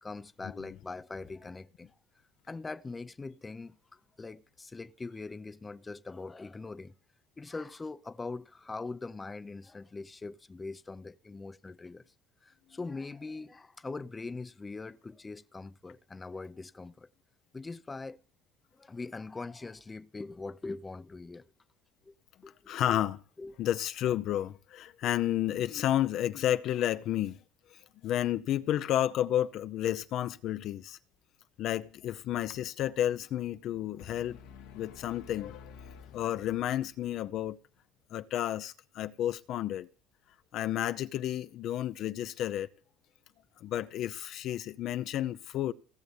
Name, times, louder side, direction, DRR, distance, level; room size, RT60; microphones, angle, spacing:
voice 1, 0.0-1.9 2.5-6.9 7.4-12.0 12.4-17.1 17.5-18.2 18.7-21.4 22.1-22.2 22.4-22.7 23.4-23.5, left 3 dB, 20° left, 0.6 m, -42 dB
voice 2, 22.7-23.2 23.6-27.4 28.0-31.0 31.6-34.4 34.7-35.7 36.1-37.6 38.1-39.9 40.5-42.7 43.6-45.7, left 12 dB, 60° left, 0.7 m, -31 dB
sound 1, 34.0-37.0, left 6 dB, 90° left, 1.9 m, -51 dB
17.0 x 6.9 x 8.1 m
supercardioid pair, 105°, 0 cm